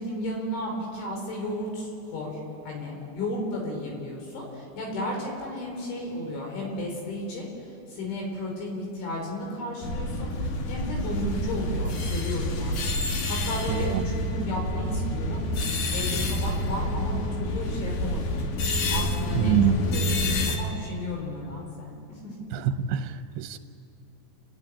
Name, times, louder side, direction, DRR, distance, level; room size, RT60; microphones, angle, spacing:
voice 1, 0.0-7.5 7.9-12.8 13.3-15.4 15.9-18.4 18.9-19.6 19.9-20.0 20.3-22.3, left 1 dB, 90° left, -1 dB, 6.9 m, -33 dB
sound 1, 9.8-20.6, left 1 dB, 60° left, 2.4 m, -28 dB
voice 2, 13.7-14.1 19.4-19.8 22.5-23.6, right 10 dB, 80° right, 8 dB, 2.5 m, -26 dB
30.0 x 10.5 x 9.9 m, 2.9 s
omnidirectional pair, 5.2 m